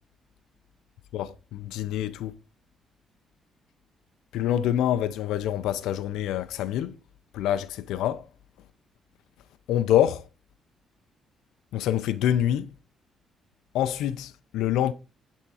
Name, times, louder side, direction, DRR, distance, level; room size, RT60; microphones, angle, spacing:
voice 1, 1.1-2.3 4.3-6.9 7.3-8.2 9.7-10.2 11.7-12.7 13.7-14.9, left 11 dB, 90° left, 0.4 m, -26 dB
7.6 x 3.5 x 4.0 m
cardioid pair, 90°, 0 cm